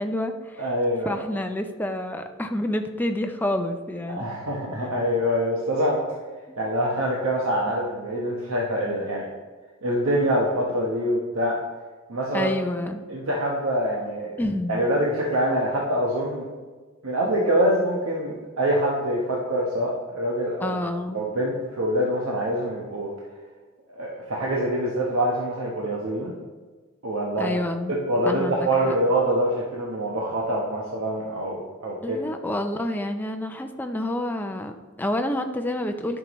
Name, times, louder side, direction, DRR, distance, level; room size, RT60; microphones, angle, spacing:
voice 1, 0.0-0.7 1.0-4.2 4.8-4.9 6.5-6.6 12.3-13.0 14.4-14.8 20.6-21.2 27.4-27.9 28.2-29.0 32.0-36.2, left 1 dB, 10° left, 6 dB, 0.5 m, -28 dB
voice 2, 0.6-1.2 4.1-6.0 6.6-9.3 9.8-11.6 12.1-12.5 13.1-14.4 14.7-16.5 17.0-20.8 21.1-23.1 23.9-26.3 27.0-27.5 27.9-32.2, equal, 70° right, -3 dB, 1.0 m, -25 dB
11.0 x 5.9 x 3.0 m, 1.4 s
head